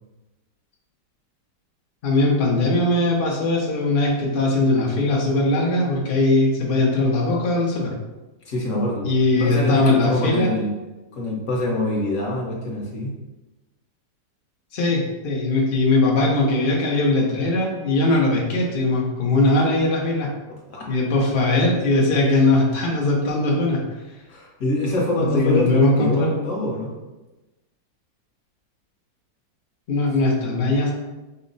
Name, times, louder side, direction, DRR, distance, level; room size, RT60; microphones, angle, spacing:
voice 1, 2.0-7.9 9.0-10.5 14.7-20.3 20.9-23.8 25.2-26.3 29.9-30.9, left 2 dB, 70° left, -2 dB, 0.5 m, -20 dB
voice 2, 8.4-10.7 11.1-13.1 20.7-20.9 24.3-26.9, left 1 dB, 50° left, -2 dB, 1.1 m, -25 dB
5.4 x 2.0 x 3.9 m, 1.1 s
omnidirectional pair, 2.0 m